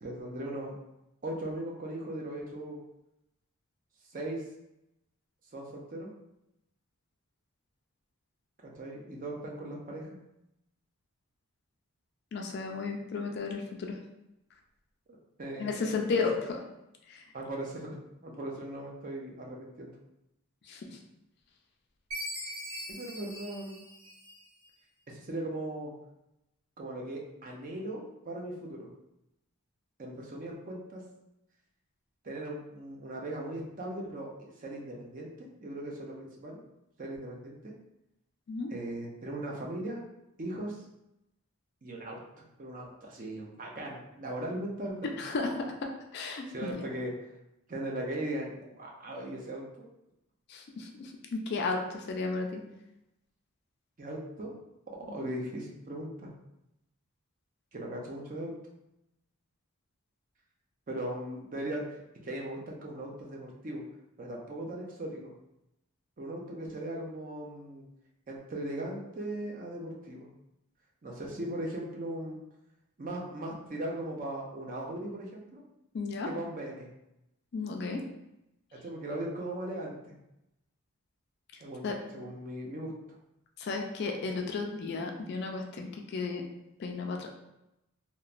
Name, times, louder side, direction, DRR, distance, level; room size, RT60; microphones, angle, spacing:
voice 1, 0.0-0.7 1.2-2.8 4.1-4.4 5.5-6.1 8.6-10.2 15.4-16.2 17.3-18.0 18.2-19.9 22.9-23.8 25.1-25.9 26.8-28.9 30.0-31.0 32.2-36.6 37.0-37.7 38.7-40.0 40.4-40.9 41.8-45.5 46.5-47.3 47.7-49.9 54.0-54.5 55.1-56.3 57.7-58.5 60.9-63.8 64.2-65.3 66.2-67.8 68.3-70.3 71.0-72.4 73.0-75.6 76.2-76.9 78.7-80.1 81.6-82.9, right 1 dB, 35° right, -1 dB, 0.4 m, -38 dB
voice 2, 12.3-14.0 15.6-16.3 17.1-17.2 20.7-20.9 38.5-38.7 45.2-45.5 46.1-46.8 50.5-52.6 75.9-76.3 77.5-78.0 81.8-82.0 83.6-86.4 86.8-87.3, left 4 dB, 45° left, 2 dB, 0.3 m, -33 dB
Chime, 22.1-24.7, equal, 85° right, 1.2 m, -41 dB
2.9 x 2.1 x 2.4 m, 0.87 s
head